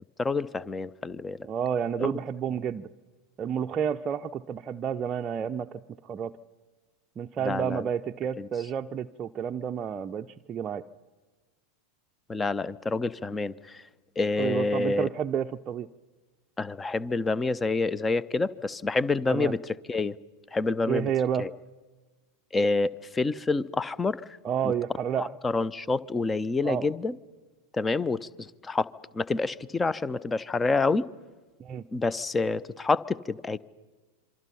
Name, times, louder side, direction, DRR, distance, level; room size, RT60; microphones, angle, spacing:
voice 1, 0.2-1.5 2.0-2.1 7.4-7.9 8.4-8.5 12.3-13.8 14.2-15.1 16.6-20.2 20.5-21.1 21.4-21.5 22.5-24.2 24.6-24.7 25.2-27.2 27.7-28.9 29.1-31.1 31.9-33.6, left 3 dB, 15° left, 20 dB, 0.7 m, -28 dB
voice 2, 1.4-2.9 3.4-6.3 7.2-10.8 14.4-15.9 19.3-19.5 20.9-21.5 24.4-25.3 26.6-26.9 31.6-31.8, right 8 dB, 25° right, 6 dB, 0.6 m, -30 dB
27.0 x 24.0 x 5.8 m, 1.3 s
figure-of-eight pair, 90°, 0 cm